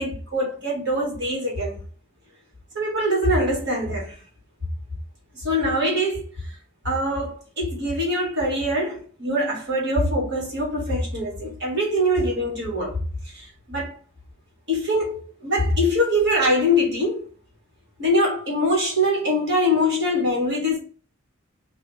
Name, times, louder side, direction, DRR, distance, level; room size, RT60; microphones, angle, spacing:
voice 1, 0.0-1.8 2.7-4.2 5.3-6.2 6.8-13.0 13.3-14.0 14.7-17.3 18.0-20.8, left 1 dB, 60° right, 2.0 m, -23 dB
4.6 x 2.6 x 3.4 m
head